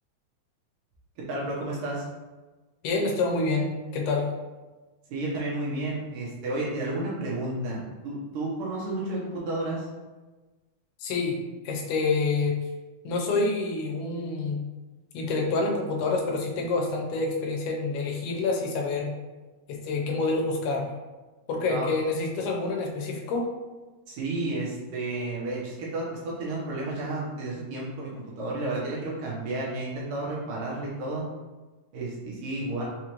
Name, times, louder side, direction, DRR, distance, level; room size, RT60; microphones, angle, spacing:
voice 1, 1.2-2.0 5.1-9.9 21.7-21.9 24.1-31.3 31.9-32.8, right 2 dB, 70° right, -5 dB, 2.1 m, -32 dB
voice 2, 2.8-4.3 11.0-12.6 13.0-14.6 15.1-19.1 19.7-20.9 21.5-23.4, left 3 dB, 90° left, 0 dB, 2.7 m, -27 dB
6.2 x 2.5 x 2.9 m, 1.2 s
omnidirectional pair, 4.4 m